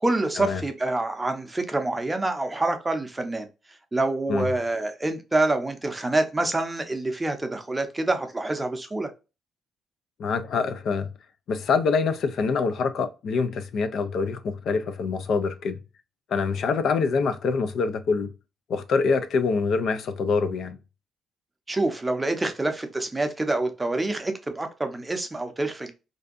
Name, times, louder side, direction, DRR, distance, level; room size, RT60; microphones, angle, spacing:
voice 1, 0.0-3.5 3.9-9.1 21.7-25.9, right 2 dB, 15° right, 0.5 m, -26 dB
voice 2, 10.2-11.1 11.5-15.8 16.3-18.3 18.7-20.8, left 4 dB, 65° left, 0.3 m, -25 dB
2.6 x 2.2 x 2.4 m
cardioid pair, 90°, 0 cm